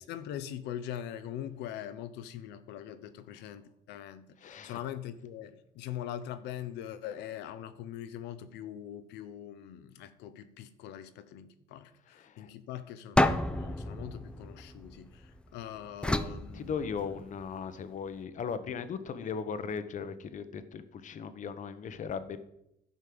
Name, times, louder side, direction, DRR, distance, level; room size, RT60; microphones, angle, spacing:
voice 1, 0.1-17.2, left 10 dB, 90° left, 12 dB, 0.9 m, -42 dB
voice 2, 4.4-4.8 12.1-12.5 16.5-22.4, left 6 dB, 50° left, 11 dB, 1.1 m, -38 dB
sound 1, 13.2-15.4 16.0-17.4, left 1 dB, 5° left, 0.6 m, -30 dB
11.5 x 5.4 x 7.8 m, 0.81 s
cardioid pair, 110°, 17 cm